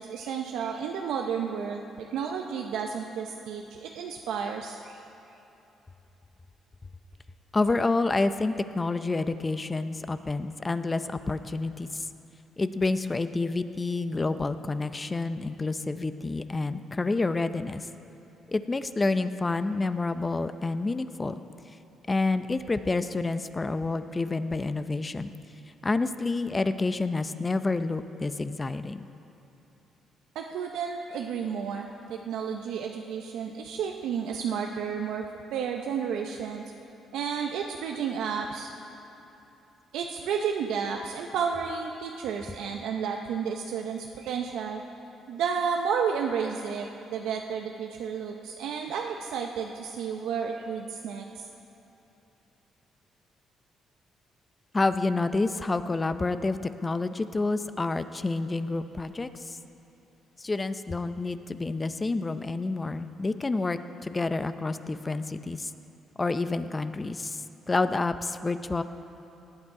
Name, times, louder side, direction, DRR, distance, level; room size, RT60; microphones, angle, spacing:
voice 1, 0.0-5.0 30.3-35.2 35.5-36.6 37.1-38.7 39.9-44.8 45.3-51.4, right 6 dB, 85° right, 2 dB, 0.6 m, -32 dB
voice 2, 7.5-11.0 11.3-11.9 12.6-17.8 18.5-21.3 22.1-25.3 25.8-29.1 54.7-59.3 60.4-65.7 66.2-67.4 67.7-68.8, left 3 dB, 25° left, 11 dB, 0.5 m, -28 dB
18.0 x 8.8 x 4.8 m, 3.0 s
cardioid pair, 90°, 0 cm